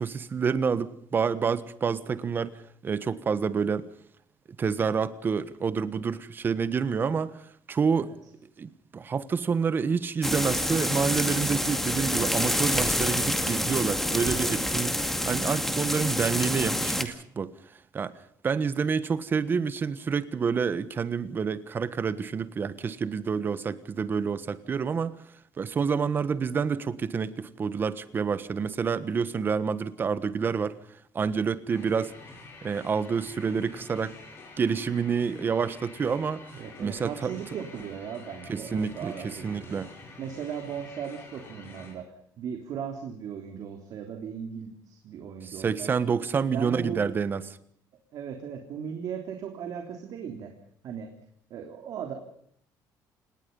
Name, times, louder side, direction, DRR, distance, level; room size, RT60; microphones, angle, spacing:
voice 1, 0.0-2.5 2.8-3.9 4.6-7.4 7.7-8.1 8.6-15.0 15.2-17.5 17.9-18.1 18.4-25.1 25.6-30.8 31.1-32.1 32.6-34.2 34.6-36.4 36.8-37.3 38.5-39.9 45.4-47.4, right 6 dB, 30° right, 1.3 m, -28 dB
sound 1, 10.2-17.0, left 1 dB, 5° left, 2.2 m, -27 dB
sound 2, 31.7-41.9, left 3 dB, 30° left, 8.0 m, -48 dB
voice 2, 36.5-39.8 40.2-42.1 42.4-46.0 46.5-47.1 48.1-50.5 50.8-51.1 51.5-52.1, right 7 dB, 55° right, 3.4 m, -37 dB
29.0 x 19.5 x 5.5 m
cardioid pair, 160°, 7 cm